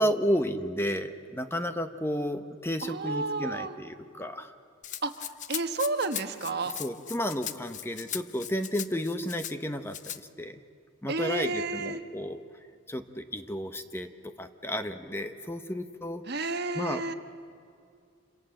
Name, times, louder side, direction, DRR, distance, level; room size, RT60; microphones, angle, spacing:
voice 1, 0.0-4.5 6.8-10.6 11.0-12.4 12.9-14.1 14.4-16.2 16.7-17.1, equal, 10° left, 8 dB, 0.9 m, -32 dB
voice 2, 2.8-3.8 5.0-6.7 11.1-12.0 16.3-17.1, right 3 dB, 55° right, 7 dB, 1.3 m, -31 dB
Rattle (instrument), 4.8-9.5 9.9-10.2, left 10 dB, 40° left, 0.7 m, -39 dB
27.5 x 27.0 x 7.7 m, 2.3 s
head